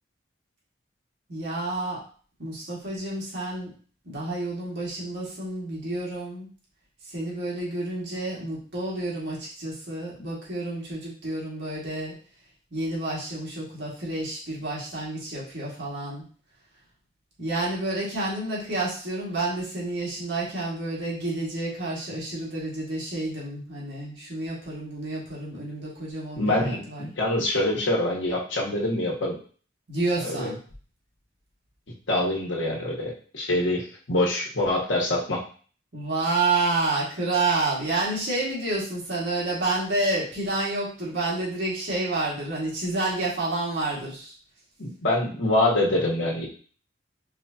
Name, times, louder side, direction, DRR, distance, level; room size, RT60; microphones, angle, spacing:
voice 1, 1.3-2.0 2.4-3.7 4.0-6.5 7.0-12.1 12.7-16.2 17.4-27.1 29.9-30.6 35.9-44.3, right 2 dB, 65° right, -6 dB, 2.0 m, -29 dB
voice 2, 26.4-29.3 30.2-30.5 32.1-35.4 44.8-46.5, left 1 dB, 80° left, -2 dB, 1.3 m, -25 dB
4.7 x 3.6 x 2.9 m, 0.42 s
head